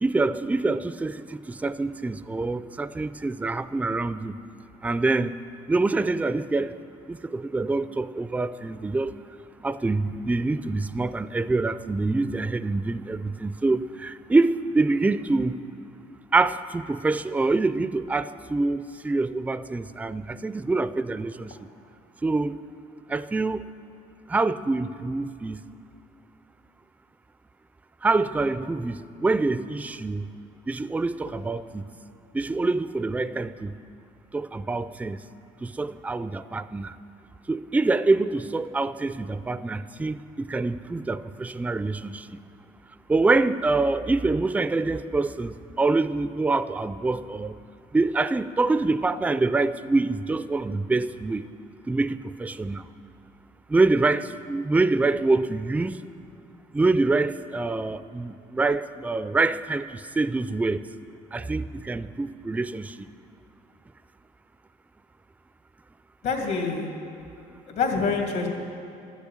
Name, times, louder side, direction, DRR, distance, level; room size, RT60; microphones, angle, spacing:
voice 1, 0.0-4.3 4.8-5.4 5.7-6.8 7.1-9.2 9.6-15.6 16.3-21.5 22.2-22.6 23.1-23.6 24.3-25.6 28.0-30.3 30.7-31.8 32.3-33.7 34.3-35.2 35.6-37.0 37.5-42.3 43.1-47.6 47.9-51.5 51.9-52.9 53.7-56.0 56.7-60.8 61.3-63.1, right 3 dB, 10° right, 14 dB, 0.3 m, -25 dB
voice 2, 66.2-66.9 67.7-68.5, left 4 dB, 75° left, 1 dB, 2.5 m, -26 dB
12.5 x 7.2 x 9.9 m, 2.6 s
cardioid pair, 110°, 17 cm